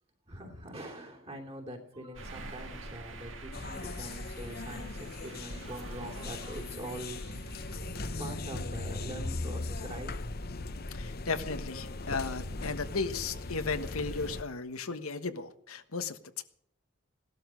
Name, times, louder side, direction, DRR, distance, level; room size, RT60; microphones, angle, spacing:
voice 1, 0.3-7.7 8.2-10.1, right 1 dB, 30° right, 2 dB, 3.0 m, -44 dB
sound 1, 2.1-9.5, right 2 dB, 65° right, 2.1 m, -48 dB
sound 2, 3.5-14.4, left 2 dB, 45° left, 0.9 m, -39 dB
voice 2, 10.9-16.4, left 4 dB, 85° left, 9 dB, 1.3 m, -35 dB
17.5 x 12.5 x 6.5 m, 0.67 s
head